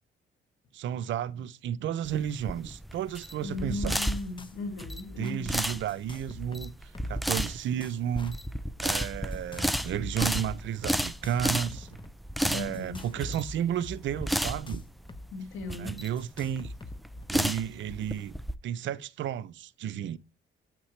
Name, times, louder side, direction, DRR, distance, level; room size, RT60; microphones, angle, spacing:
voice 1, 0.7-4.0 5.2-8.4 8.8-11.9 12.5-14.8 15.8-16.7 17.3-18.3 18.6-20.2, right 10 dB, 70° right, 0.6 m, -32 dB
sound 1, 2.0-18.5, equal, ahead, 0.5 m, -32 dB
voice 2, 3.4-5.5 12.5-13.0 15.3-16.0, left 2 dB, 80° left, 2.2 m, -37 dB
sound 2, 3.5-3.7 3.9-4.6 4.8-5.3 5.9-7.3 7.6-8.5 9.3-10.6 11.0-12.1 12.7-15.3 15.5-15.6 16.2-17.2, left 2 dB, 25° left, 0.9 m, -44 dB
8.1 x 6.0 x 3.2 m
cardioid pair, 90°, 20 cm